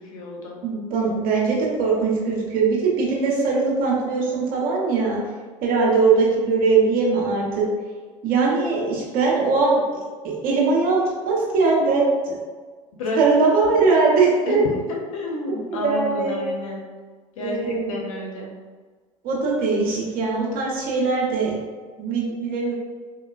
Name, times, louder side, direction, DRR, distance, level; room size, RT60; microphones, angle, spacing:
voice 1, 0.0-0.6 13.0-13.2 14.5-16.8 17.4-18.5, left 2 dB, 80° left, -1 dB, 0.8 m, -30 dB
voice 2, 0.6-5.2 5.6-7.7 8.2-9.8 10.2-12.4 13.2-14.6 15.7-16.4 17.4-17.9 19.2-21.6 22.0-22.7, right 4 dB, 55° right, -4 dB, 1.3 m, -21 dB
3.9 x 2.8 x 2.6 m, 1.4 s
hypercardioid pair, 75°, 18 cm